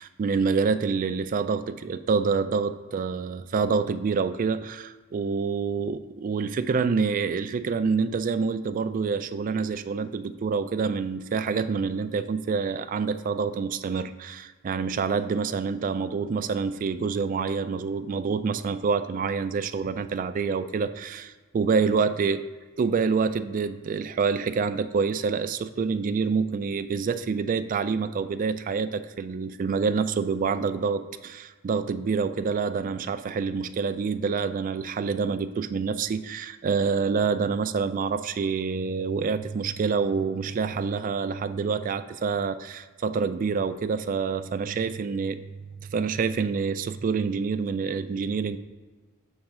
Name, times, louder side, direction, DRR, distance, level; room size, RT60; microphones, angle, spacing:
voice 1, 0.0-22.4 22.8-45.4 45.8-48.6, right 5 dB, 40° right, 11 dB, 0.3 m, -27 dB
7.2 x 3.2 x 6.0 m, 1.3 s
head